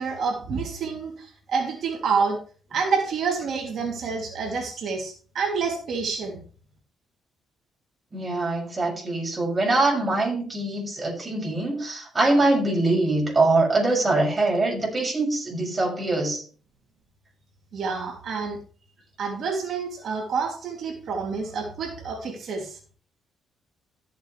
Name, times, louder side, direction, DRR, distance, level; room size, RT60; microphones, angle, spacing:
voice 1, 0.0-2.4 2.7-6.4 17.7-18.6 19.2-22.8, right 5 dB, 65° right, 1 dB, 2.9 m, -28 dB
voice 2, 8.1-16.4, right 2 dB, 25° right, -2 dB, 6.9 m, -23 dB
14.0 x 8.1 x 3.3 m, 0.41 s
cardioid pair, 90°, 0 cm